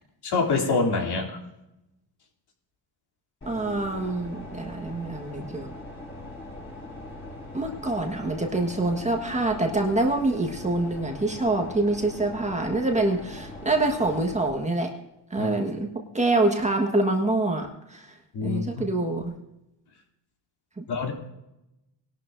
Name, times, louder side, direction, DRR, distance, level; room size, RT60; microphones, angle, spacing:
voice 1, 0.2-1.4 15.4-15.5 18.3-18.8 20.9-21.1, left 4 dB, 55° left, 1 dB, 3.1 m, -26 dB
sound 1, 3.4-14.5, left 2 dB, 25° left, 4.8 m, -41 dB
voice 2, 3.5-5.7 7.5-14.9 15.3-18.1 18.4-19.3 20.8-20.9, right 2 dB, 15° right, 2 dB, 1.5 m, -26 dB
20.0 x 12.0 x 2.7 m, 0.91 s
cardioid pair, 125°, 46 cm